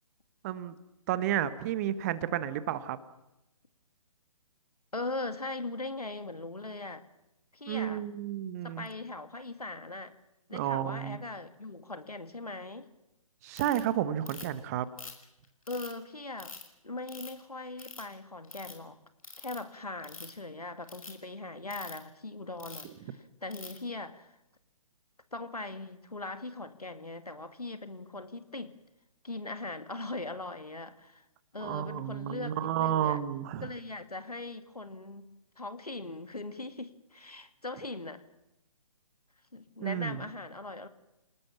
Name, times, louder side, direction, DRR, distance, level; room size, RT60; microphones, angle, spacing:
voice 1, 0.4-0.7 1.1-3.0 7.7-8.9 10.5-11.2 13.4-14.9 31.6-33.7 39.8-40.2, right 11 dB, 25° right, 15 dB, 1.2 m, -31 dB
voice 2, 4.9-7.0 7.5-8.0 8.6-10.2 10.5-12.9 15.7-16.6 16.8-19.0 19.4-24.3 25.3-28.7 29.2-31.2 31.5-33.2 33.6-35.3 35.6-38.2 39.5-40.9, left 2 dB, 85° left, 10 dB, 2.3 m, -40 dB
Ratchet pawl, 13.6-13.8 14.3-14.6 15.0-15.9 16.4-16.6 17.1-17.4 17.8-18.1 18.4-18.7 19.2-19.6 20.0-20.4 20.8-21.1 21.7-22.0 22.6-22.9 23.5-23.8, left 4 dB, 65° left, 5.8 m, -45 dB
29.0 x 19.5 x 7.3 m, 0.91 s
figure-of-eight pair, 140°, 19 cm